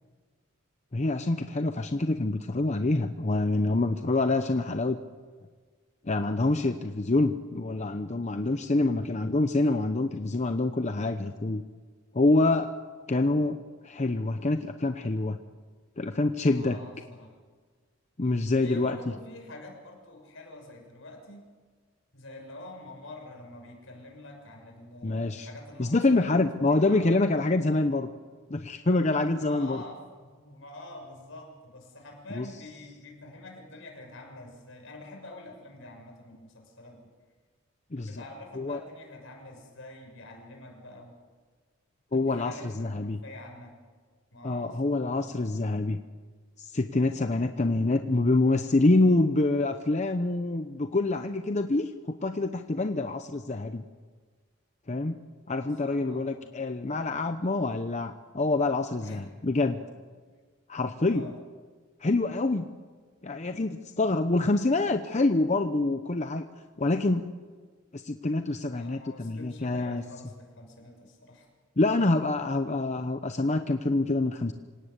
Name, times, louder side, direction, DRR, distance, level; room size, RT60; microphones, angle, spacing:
voice 1, 0.9-5.0 6.0-11.6 12.1-12.7 13.1-13.6 13.8-15.4 16.0-16.8 18.2-19.0 25.0-25.5 25.8-28.1 28.5-29.8 32.3-32.5 37.9-38.2 38.6-38.8 42.1-43.2 44.4-46.0 46.6-53.8 54.9-55.2 55.5-59.8 60.7-61.3 62.0-62.7 63.2-66.5 66.8-67.3 67.9-70.0 71.8-74.5, left 2 dB, 35° left, 8 dB, 0.8 m, -26 dB
voice 2, 16.4-17.3 18.6-21.4 22.1-27.4 29.4-37.1 37.9-41.2 42.1-43.7 44.3-45.4 55.5-56.5 59.0-59.2 61.0-61.4 68.7-71.5, left 2 dB, 70° left, 2 dB, 6.6 m, -46 dB
26.5 x 18.0 x 8.2 m, 1.5 s
head